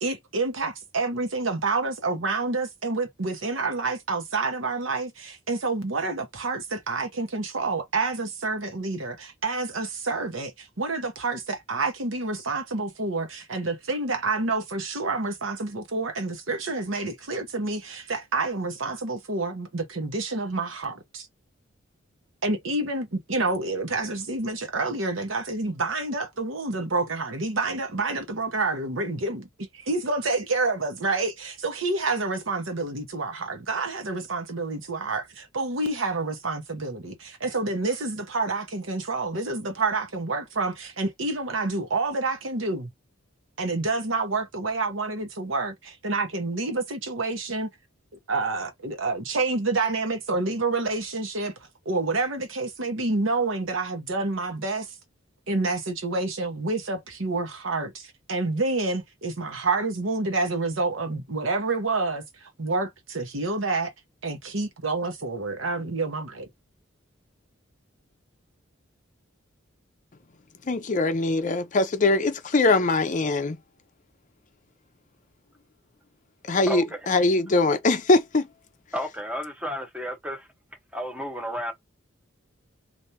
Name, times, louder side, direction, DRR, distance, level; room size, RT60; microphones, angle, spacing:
voice 1, 0.0-21.3 22.4-29.5 29.7-42.9 43.6-47.7 48.3-51.5 51.8-54.9 55.5-62.2 62.6-63.9 64.2-66.5, right 3 dB, 75° right, 1.0 m, -28 dB
voice 2, 70.7-73.6 76.5-78.5, left 2 dB, 40° left, 0.5 m, -22 dB
voice 3, 76.7-77.1 78.9-80.5 80.9-81.7, equal, 5° right, 1.0 m, -32 dB
3.4 x 2.6 x 2.8 m
head